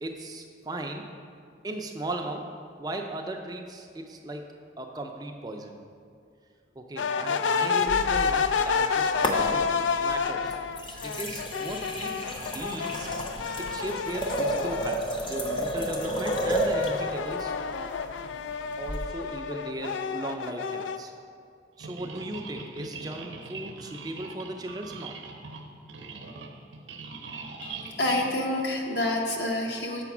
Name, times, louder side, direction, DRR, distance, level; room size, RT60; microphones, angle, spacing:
voice 1, 0.0-1.1 1.6-2.5 2.8-4.5 4.8-5.7 6.8-9.7 10.0-10.6 11.0-12.2 12.5-13.1 13.6-17.5 18.8-21.1 21.8-25.2, right 1 dB, 20° right, 3 dB, 0.4 m, -37 dB
sound 1, 7.0-15.1 15.5-21.0, left 5 dB, 85° left, 0.4 m, -29 dB
sound 2, 7.9-8.8 9.2-9.9 10.5-17.0 18.9-19.0, equal, 25° left, 0.7 m, -31 dB
sound 3, 21.8-29.2, right 4 dB, 80° right, 0.7 m, -42 dB
voice 2, 27.6-30.0, left 1 dB, 60° left, 0 dB, 1.0 m, -28 dB
6.9 x 5.0 x 5.9 m, 2.3 s
head